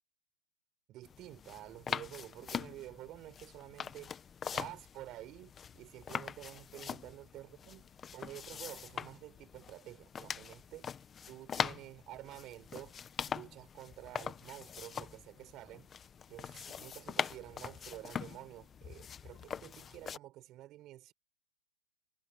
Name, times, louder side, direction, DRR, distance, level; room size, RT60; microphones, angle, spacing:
voice 1, 0.9-4.1 4.5-10.9 11.3-13.0 13.3-15.9 16.3-21.1, right 15 dB, 30° right, 5.0 m, -50 dB
sound 1, 1.0-20.2, left 7 dB, 20° left, 1.2 m, -42 dB
hypercardioid pair, 140°, 0 cm